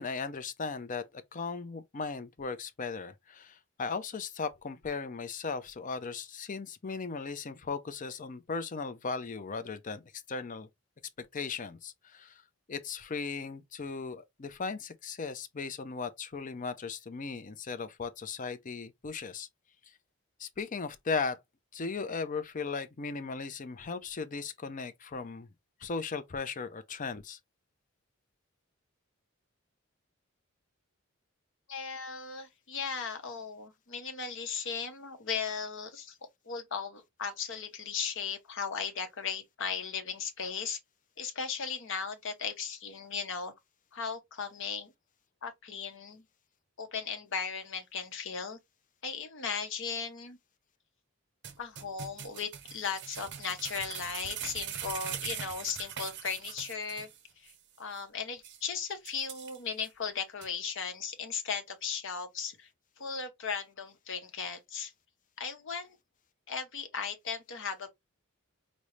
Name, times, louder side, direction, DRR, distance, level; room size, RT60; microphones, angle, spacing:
voice 1, 0.0-10.7 11.2-12.4 12.7-19.5 19.9-20.0 20.4-21.4 21.7-25.5 25.8-27.4, left 4 dB, 40° left, 0.5 m, -37 dB
voice 2, 31.7-36.2 36.5-40.8 41.2-43.5 43.9-44.9 45.4-46.2 46.8-48.6 49.0-50.4 51.6-57.1 57.4-57.5 57.8-62.7 63.0-64.9 65.4-66.0 66.5-67.9, left 6 dB, 60° left, 0.9 m, -37 dB
sound 1, 51.4-57.2 57.5-57.6 58.0-58.1 58.4-58.6 59.1-59.9 60.4-60.5, right 9 dB, 55° right, 0.6 m, -41 dB
5.2 x 2.1 x 3.0 m
head